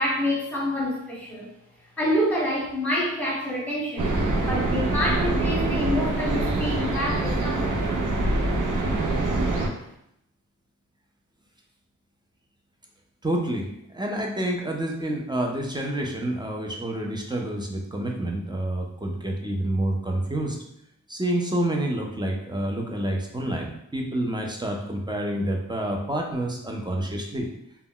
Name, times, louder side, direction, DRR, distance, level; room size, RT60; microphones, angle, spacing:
voice 1, 0.0-1.5 2.0-4.1 4.4-7.9, equal, 5° left, -5 dB, 1.0 m, -27 dB
sound 1, 4.0-9.7, right 2 dB, 70° right, 0.6 m, -25 dB
voice 2, 13.2-20.6 21.1-27.5, right 1 dB, 15° right, 0 dB, 0.5 m, -28 dB
2.1 x 2.0 x 3.7 m, 0.77 s
wide cardioid pair, 75°, 32 cm